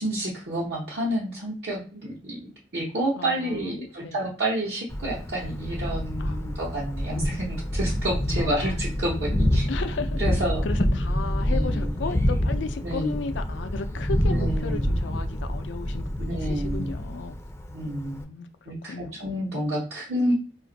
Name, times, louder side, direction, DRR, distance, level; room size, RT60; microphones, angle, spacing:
voice 1, 0.0-9.7 10.2-10.6 11.5-11.9 12.8-13.2 14.3-14.9 16.2-16.9 17.7-18.2 18.7-20.3, right 1 dB, 65° right, -5 dB, 0.9 m, -29 dB
voice 2, 3.2-4.2 6.2-6.8 8.4-8.8 9.7-17.4 17.9-18.5 18.9-19.3, left 4 dB, 90° left, 8 dB, 0.5 m, -35 dB
Thunder, 4.9-18.2, equal, 15° left, 0.4 m, -27 dB
2.5 x 2.4 x 3.9 m, 0.40 s
head